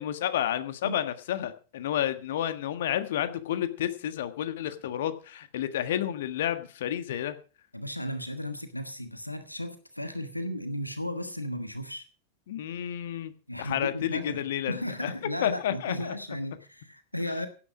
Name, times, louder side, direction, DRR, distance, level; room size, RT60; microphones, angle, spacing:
voice 1, 0.0-7.4 12.5-13.3 13.6-15.1 15.4-16.1, left 11 dB, 55° left, 11 dB, 1.5 m, -30 dB
voice 2, 7.7-12.1 13.5-17.5, left 1 dB, 85° left, 10 dB, 1.3 m, -35 dB
16.5 x 9.5 x 5.0 m, 0.37 s
figure-of-eight pair, 90°, 0 cm